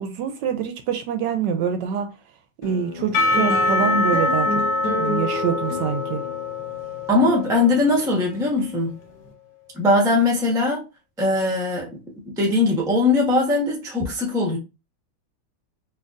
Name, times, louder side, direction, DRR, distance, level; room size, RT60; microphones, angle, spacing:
voice 1, 0.0-2.1 2.6-4.6 4.9-6.2, right 8 dB, 75° right, 1.1 m, -25 dB
sound 1, 2.6-9.3, left 3 dB, 65° left, 1.3 m, -31 dB
Percussion / Church bell, 3.1-8.4, left 2 dB, 85° left, 1.7 m, -24 dB
voice 2, 7.1-8.9 9.7-10.8 11.2-11.9 12.3-14.6, left 2 dB, 5° right, 0.5 m, -20 dB
4.4 x 2.7 x 2.5 m
omnidirectional pair, 2.1 m